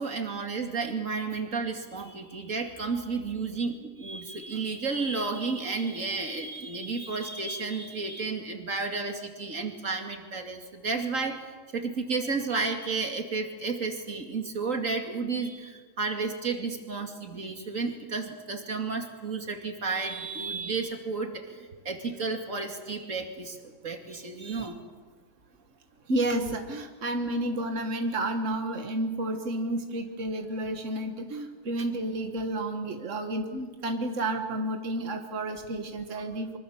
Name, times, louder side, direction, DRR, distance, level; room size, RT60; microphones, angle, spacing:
voice 1, 0.0-11.4 11.7-23.6 23.8-24.8, right 4 dB, 25° right, 5 dB, 2.3 m, -32 dB
voice 2, 26.1-36.6, right 1 dB, 50° right, 5 dB, 0.9 m, -31 dB
25.0 x 24.5 x 7.3 m, 1.4 s
omnidirectional pair, 3.7 m